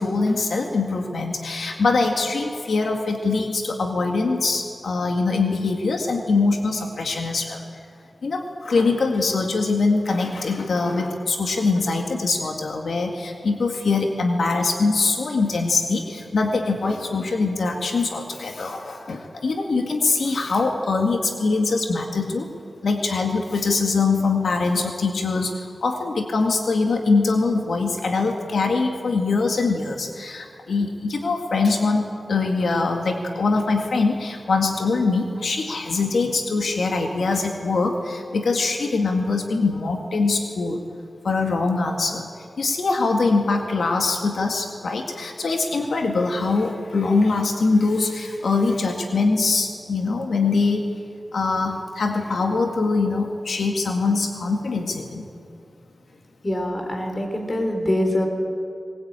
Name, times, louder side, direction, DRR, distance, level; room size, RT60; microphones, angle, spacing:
voice 1, 0.0-7.7 8.2-22.5 22.8-40.8 41.2-42.3 42.6-50.9 51.3-55.3, left 3 dB, 85° left, 3 dB, 1.9 m, -23 dB
voice 2, 56.4-58.3, left 1 dB, 25° left, 3 dB, 4.1 m, -24 dB
21.5 x 20.0 x 9.0 m, 2.5 s
wide cardioid pair, 115°, 0 cm